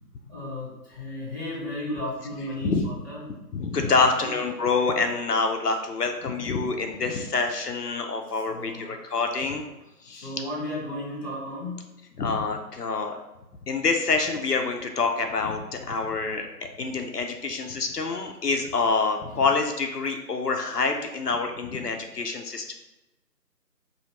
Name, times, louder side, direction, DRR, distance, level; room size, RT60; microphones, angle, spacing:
voice 1, 0.3-3.2 4.0-4.1 8.5-8.9 10.2-11.8, left 1 dB, 5° right, -20 dB, 1.1 m, -34 dB
voice 2, 3.5-9.6 10.0-10.4 12.2-13.2 13.7-22.7, left 4 dB, 70° left, 4 dB, 0.6 m, -26 dB
4.9 x 2.7 x 2.8 m, 0.98 s
figure-of-eight pair, 160°, 49 cm